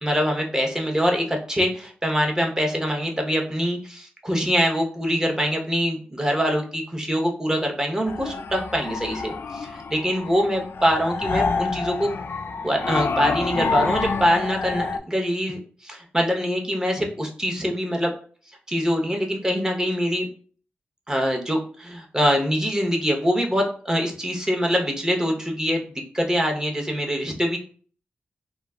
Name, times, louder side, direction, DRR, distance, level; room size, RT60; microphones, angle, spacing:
voice 1, 0.0-12.1 12.6-18.1 18.7-20.3 21.1-25.8 26.1-27.6, equal, 15° right, 1 dB, 0.9 m, -24 dB
sound 1, 8.1-15.0, left 4 dB, 60° left, 0.3 m, -28 dB
3.1 x 2.3 x 2.3 m, 0.43 s
cardioid pair, 40°, 4 cm